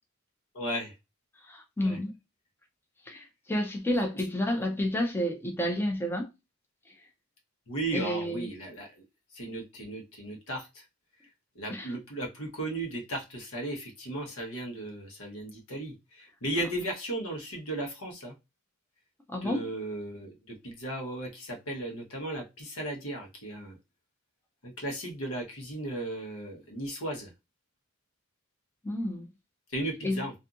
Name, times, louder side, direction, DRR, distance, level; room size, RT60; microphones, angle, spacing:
voice 1, 0.5-0.9 1.8-2.0 7.7-9.0 9.3-10.8 11.5-18.3 19.4-23.7 24.6-27.3 29.7-30.3, right 1 dB, 85° left, 1.0 m, -36 dB
voice 2, 1.4-2.1 3.1-6.3 7.9-8.5 11.7-11.9 19.3-19.7 28.8-29.3 30.0-30.2, left 1 dB, 10° left, 0.4 m, -30 dB
2.6 x 2.5 x 2.4 m
head